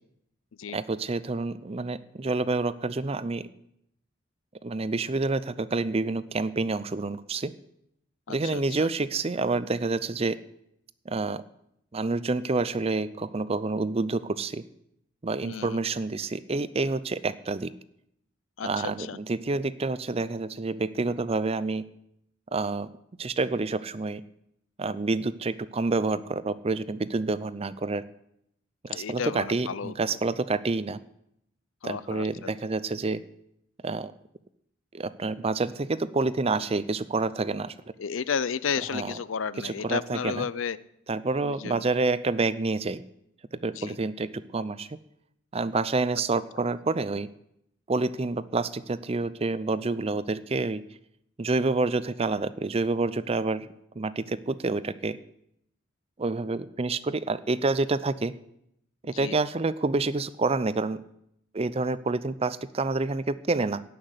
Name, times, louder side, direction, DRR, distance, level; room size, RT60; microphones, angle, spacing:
voice 1, 0.7-3.5 4.6-7.5 8.3-10.4 11.1-11.4 11.9-14.6 15.2-17.7 18.6-21.8 22.5-22.9 23.2-24.2 24.8-28.0 28.8-31.0 31.8-33.2 33.8-34.1 34.9-37.7 38.9-39.1 39.6-40.5 41.1-43.0 43.5-45.0 45.5-47.3 47.9-50.8 51.4-53.7 54.0-55.2 56.2-58.3 59.0-61.0 61.5-63.8, right 3 dB, 30° right, 15 dB, 0.5 m, -28 dB
voice 2, 8.3-8.9 15.4-15.8 18.6-19.2 28.9-29.9 31.8-32.3 38.0-40.8 41.4-41.8 43.8-44.0 59.1-59.4, left 6 dB, 90° left, 17 dB, 0.5 m, -32 dB
17.0 x 6.0 x 8.0 m, 0.77 s
head